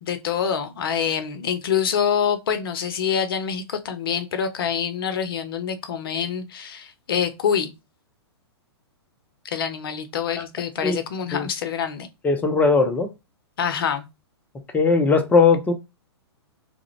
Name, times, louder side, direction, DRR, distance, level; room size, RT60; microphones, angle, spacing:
voice 1, 0.0-7.7 9.5-12.1 13.6-14.0, left 7 dB, 55° left, 0.6 m, -26 dB
voice 2, 12.2-13.1 14.7-15.7, left 4 dB, 10° left, 0.5 m, -18 dB
2.4 x 2.1 x 3.1 m
figure-of-eight pair, 115°, 14 cm